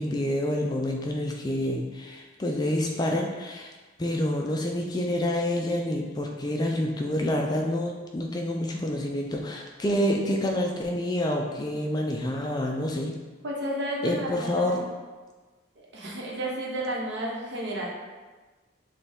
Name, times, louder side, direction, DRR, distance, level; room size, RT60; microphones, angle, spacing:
voice 1, 0.0-3.7 4.0-13.2 14.0-14.9, left 1 dB, 20° left, 1 dB, 0.3 m, -28 dB
voice 2, 13.4-14.8 15.8-17.9, right 1 dB, 60° right, -3 dB, 0.9 m, -32 dB
6.3 x 2.3 x 3.5 m, 1.3 s
head